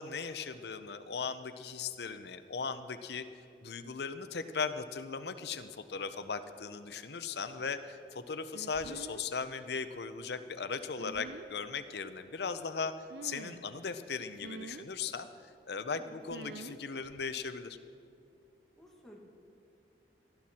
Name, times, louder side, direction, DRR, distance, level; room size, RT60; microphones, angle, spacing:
voice 1, 0.0-3.2 3.6-12.9 13.2-15.3 15.7-17.8, left 5 dB, 70° left, 11 dB, 0.7 m, -38 dB
sound 1, 8.5-9.3 10.9-11.5 13.1-13.7 14.4-14.9 16.3-16.8 17.0-17.3, right 3 dB, 80° right, 0.5 m, -46 dB
voice 2, 18.7-19.2, equal, ahead, -3 dB, 1.5 m, -54 dB
17.5 x 12.0 x 4.3 m, 2.5 s
head